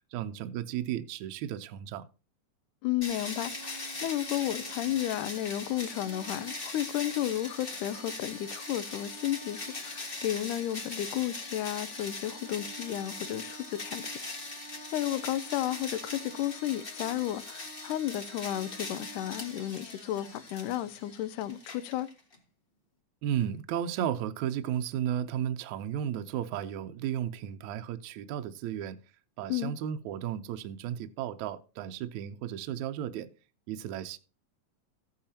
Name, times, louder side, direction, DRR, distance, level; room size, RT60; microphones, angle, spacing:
voice 1, 0.1-2.1 23.2-29.0 29.4-33.3 33.7-34.2, right 10 dB, 75° right, 1.8 m, -34 dB
voice 2, 2.8-14.1 14.9-22.1 29.5-29.7, left 13 dB, 80° left, 2.1 m, -33 dB
sound 1, 3.0-22.4, left 2 dB, 35° left, 0.8 m, -41 dB
14.5 x 8.6 x 2.8 m
omnidirectional pair, 3.8 m